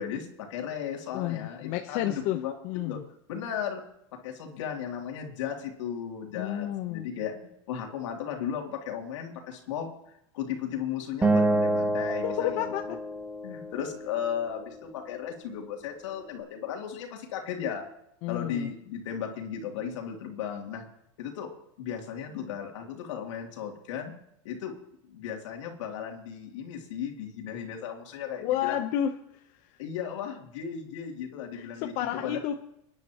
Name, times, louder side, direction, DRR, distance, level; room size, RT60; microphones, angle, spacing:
voice 1, 0.0-2.5 2.8-3.0 3.3-3.8 4.1-9.9 10.3-12.7 13.4-17.8 18.3-20.8 21.2-21.5 21.8-24.1 24.4-24.7 25.0-28.8 29.8-31.9 32.2-32.4, left 8 dB, 75° left, 1 dB, 3.2 m, -35 dB
voice 2, 1.1-3.0 6.3-7.1 12.2-13.0 18.2-18.7 28.4-29.1 31.5-32.6, left 12 dB, 50° left, 5 dB, 1.0 m, -31 dB
Acoustic guitar, 11.2-14.5, right 2 dB, 10° right, 1.6 m, -28 dB
30.0 x 10.5 x 3.1 m, 0.79 s
supercardioid pair, 130°, 16 cm